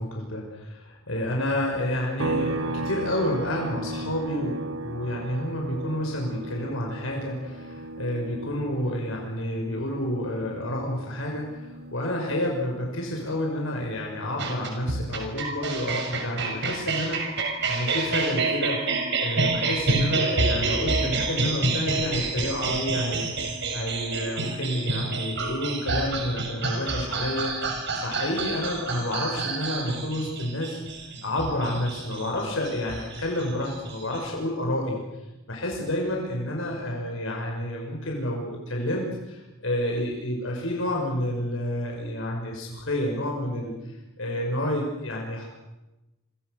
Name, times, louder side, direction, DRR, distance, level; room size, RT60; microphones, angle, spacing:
voice 1, 0.0-35.0 35.5-45.5, left 1 dB, 75° left, 0 dB, 6.0 m, -30 dB
sound 1, 2.2-15.7 16.1-18.3, right 2 dB, 85° right, 1.8 m, -37 dB
sound 2, 14.4-34.2, right 3 dB, 60° right, 6.3 m, -28 dB
29.5 x 26.5 x 6.8 m, 1.0 s
head